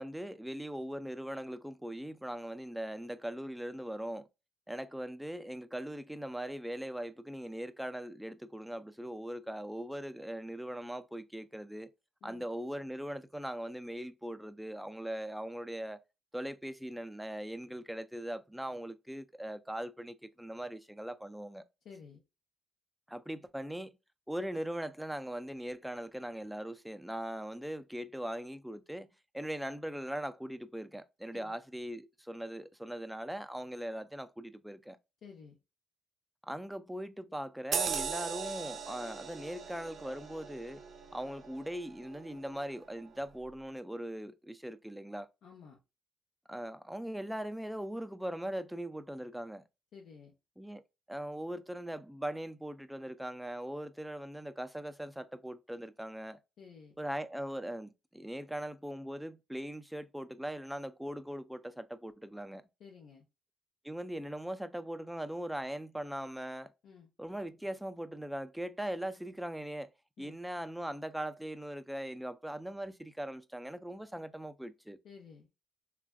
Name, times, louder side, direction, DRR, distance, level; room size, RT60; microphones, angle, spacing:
voice 1, 0.0-4.3 4.7-11.9 12.2-16.0 16.3-21.6 23.1-24.0 24.3-29.1 29.3-35.0 36.4-40.8 41.1-45.3 46.5-49.6 50.6-50.8 51.1-56.4 57.0-62.6 63.8-66.7 67.2-69.9 70.2-75.0, right 1 dB, 5° right, 0.3 m, -40 dB
voice 2, 21.8-22.2 31.3-31.6 35.2-35.6 45.4-45.8 49.9-50.3 56.6-57.0 62.8-63.3 66.8-67.1 70.2-70.4 75.0-75.5, left 6 dB, 75° left, 0.7 m, -53 dB
sound 1, 37.7-42.7 43.1-43.3, right 6 dB, 60° right, 0.5 m, -39 dB
3.2 x 2.4 x 2.2 m
cardioid pair, 90°, 0 cm